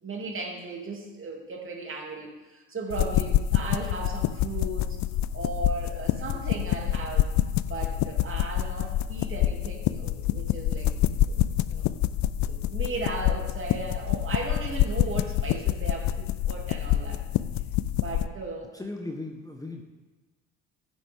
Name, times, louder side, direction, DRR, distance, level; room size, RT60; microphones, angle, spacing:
voice 1, 0.0-5.0 5.3-7.3 7.7-10.9 11.3-11.4 11.7-11.9 12.5-17.2 17.9-18.7, right 3 dB, 35° right, 0 dB, 2.8 m, -36 dB
sound 1, 2.9-18.3, left 12 dB, 50° left, 0.5 m, -27 dB
voice 2, 18.7-19.8, left 2 dB, 10° left, 2 dB, 1.3 m, -37 dB
15.0 x 7.6 x 3.6 m, 1.2 s
hypercardioid pair, 55°, 38 cm